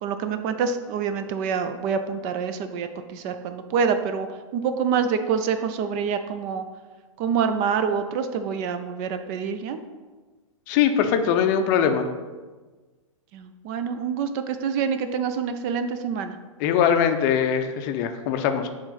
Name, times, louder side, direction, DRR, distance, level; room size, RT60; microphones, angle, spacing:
voice 1, 0.0-4.3 4.5-6.6 7.2-9.8 13.3-16.4, right 6 dB, 35° right, 9 dB, 0.4 m, -26 dB
voice 2, 10.7-12.1 16.6-18.7, left 8 dB, 35° left, 7 dB, 0.5 m, -21 dB
7.9 x 3.2 x 3.9 m, 1.3 s
figure-of-eight pair, 110°, 17 cm